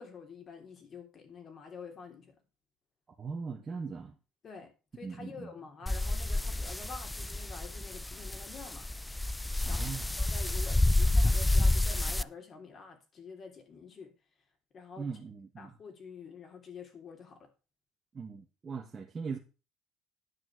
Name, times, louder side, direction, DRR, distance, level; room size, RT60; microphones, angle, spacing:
voice 1, 0.0-2.4 4.4-8.9 9.6-9.9 10.3-14.1 14.7-15.1 15.6-17.5, left 5 dB, 45° left, 3.3 m, -48 dB
voice 2, 3.2-4.1 5.0-5.5 9.6-10.1 15.0-15.7 18.1-19.4, right 5 dB, 35° right, 1.5 m, -40 dB
sound 1, 5.9-12.2, left 2 dB, 10° left, 0.4 m, -29 dB
9.9 x 6.0 x 6.3 m
supercardioid pair, 90°, 0 cm